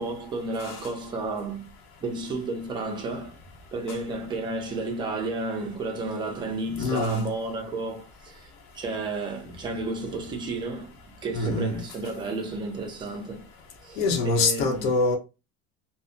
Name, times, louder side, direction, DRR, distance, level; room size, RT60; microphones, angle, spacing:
voice 1, 0.0-1.7 2.0-3.4 3.7-8.5 8.7-11.0 11.2-13.5 13.8-14.9, right 2 dB, 15° right, 0.4 m, -32 dB
voice 2, 6.7-7.2 11.3-11.8 14.0-15.2, left 3 dB, 80° left, 0.8 m, -25 dB
2.6 x 2.0 x 2.5 m
cardioid pair, 170°, 29 cm